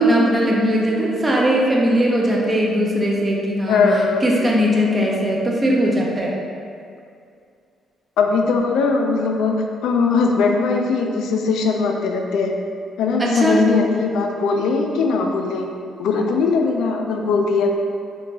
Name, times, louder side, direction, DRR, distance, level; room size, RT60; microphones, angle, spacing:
voice 1, 0.0-3.8 4.2-6.4 13.2-13.6, equal, 25° right, -3 dB, 0.5 m, -19 dB
voice 2, 3.7-4.2 8.2-9.5 9.8-12.5 13.0-15.7 16.0-17.8, left 4 dB, 80° left, 2 dB, 0.3 m, -19 dB
2.9 x 2.2 x 3.9 m, 2.3 s
cardioid pair, 90°, 0 cm